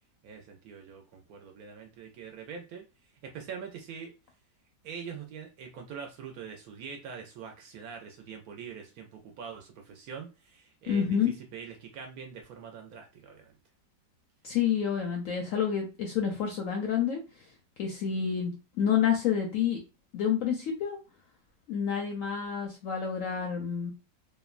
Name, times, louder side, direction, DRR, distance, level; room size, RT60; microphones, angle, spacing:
voice 1, 0.2-2.8 3.2-4.1 4.8-13.6, right 6 dB, 70° right, 3 dB, 1.0 m, -44 dB
voice 2, 10.9-11.3 14.4-17.2 17.8-18.5 18.8-19.8 20.1-21.0 21.7-23.9, left 8 dB, 70° left, 0 dB, 0.8 m, -28 dB
2.9 x 2.1 x 2.4 m, 0.29 s
omnidirectional pair, 1.9 m